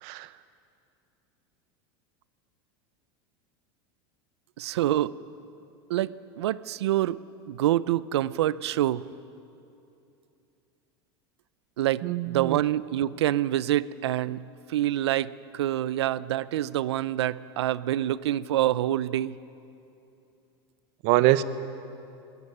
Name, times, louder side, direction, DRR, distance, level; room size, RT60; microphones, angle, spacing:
voice 1, 4.6-5.2 5.9-7.2 7.5-9.0 11.8-14.4 14.7-19.4, right 13 dB, 85° right, 18 dB, 0.6 m, -26 dB
voice 2, 12.0-12.6 21.0-21.4, right 16 dB, 60° right, 14 dB, 1.0 m, -23 dB
20.0 x 18.5 x 9.9 m, 2.7 s
supercardioid pair, 115°, 14 cm